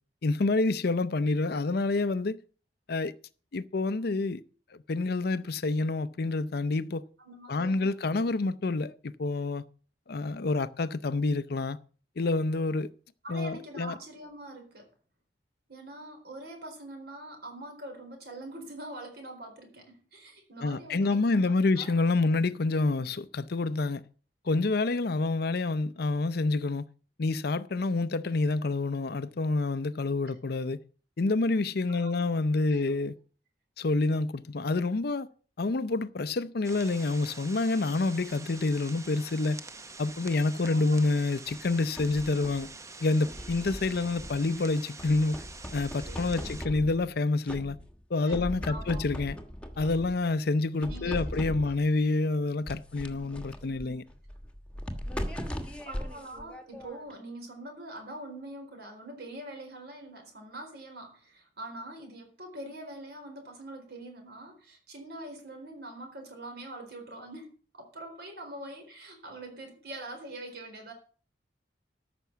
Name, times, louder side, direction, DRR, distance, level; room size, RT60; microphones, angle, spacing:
voice 1, 0.2-2.4 2.9-3.1 3.5-4.4 4.9-7.0 7.5-9.6 10.1-11.8 12.2-12.9 13.3-13.9 20.6-24.0 24.5-26.8 27.2-30.8 31.2-33.1 33.8-35.3 35.6-39.6 40.0-42.7 43.0-45.4 45.7-47.8 48.1-49.4 49.8-54.0, left 3 dB, 60° left, 0.6 m, -28 dB
voice 2, 7.2-8.2 13.2-14.9 15.7-21.9 23.0-23.1 31.9-32.2 32.7-32.8 40.5-41.0 46.1-46.6 48.3-49.0 50.8-51.4 55.5-55.6 55.9-70.9, right 1 dB, 65° right, 4.2 m, -44 dB
sound 1, 36.6-46.7, right 3 dB, 20° right, 0.7 m, -46 dB
sound 2, 41.5-42.7 43.2-44.6 45.0-47.2 47.5-48.0 48.3-50.3 50.8-51.9 52.7-57.2, equal, 5° left, 1.4 m, -39 dB
13.5 x 6.1 x 7.0 m
head